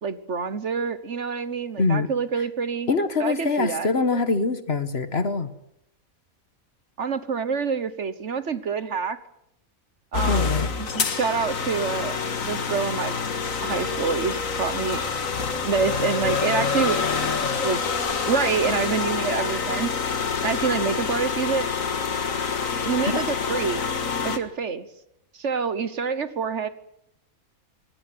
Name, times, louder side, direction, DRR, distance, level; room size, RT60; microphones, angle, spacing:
voice 1, 0.0-2.9 3.2-3.9 7.0-9.2 10.1-10.5 10.8-12.2 12.4-13.2 13.6-15.0 15.6-17.0 17.6-17.9 18.2-19.9 20.4-21.7 22.8-23.8 24.2-24.9 25.3-26.7, right 5 dB, 55° right, 13 dB, 1.5 m, -26 dB
voice 2, 1.8-2.1 2.9-5.5 10.3-10.7 23.0-23.2, left 3 dB, 45° left, 11 dB, 1.7 m, -24 dB
sound 1, 10.1-24.4, left 5 dB, 70° left, 2.1 m, -27 dB
24.5 x 17.5 x 9.6 m, 0.80 s
omnidirectional pair, 1.5 m